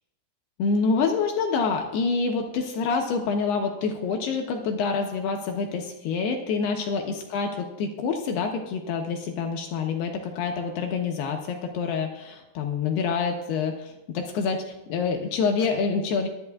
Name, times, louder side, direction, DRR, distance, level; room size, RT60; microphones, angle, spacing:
voice 1, 0.6-16.3, left 5 dB, 80° left, 3 dB, 2.4 m, -27 dB
23.0 x 11.0 x 2.4 m, 1.0 s
omnidirectional pair, 5.8 m